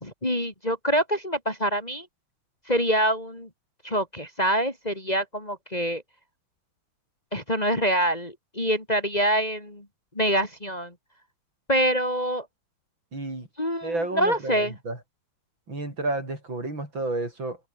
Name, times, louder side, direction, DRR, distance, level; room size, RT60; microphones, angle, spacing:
voice 1, 0.0-2.1 2.7-3.5 3.8-6.0 7.3-9.9 10.2-10.9 11.7-12.5 13.6-14.7, equal, 20° left, 3.3 m, -25 dB
voice 2, 13.1-13.5 13.8-15.0 15.7-17.7, right 2 dB, 60° right, 8.3 m, -31 dB
open air
omnidirectional pair, 2.3 m